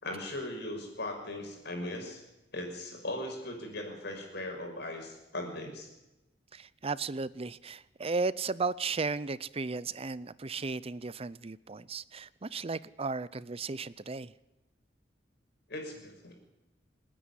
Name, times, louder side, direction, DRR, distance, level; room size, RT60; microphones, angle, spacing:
voice 1, 0.0-2.2 2.5-5.9 15.7-16.3, left 1 dB, 65° left, 3 dB, 6.2 m, -38 dB
voice 2, 6.5-14.3, right 4 dB, 35° right, 18 dB, 0.6 m, -35 dB
27.5 x 10.0 x 9.9 m, 0.96 s
head